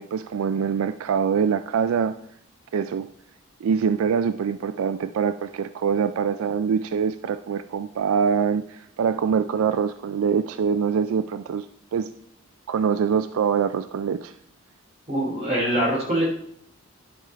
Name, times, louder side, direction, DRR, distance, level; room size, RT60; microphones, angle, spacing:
voice 1, 0.0-2.2 2.7-3.1 3.6-11.7 11.9-12.1 12.7-14.3, right 6 dB, 80° right, 12 dB, 0.3 m, -24 dB
voice 2, 15.1-16.2, right 1 dB, 30° right, -4 dB, 3.3 m, -23 dB
11.0 x 4.8 x 4.4 m, 0.67 s
head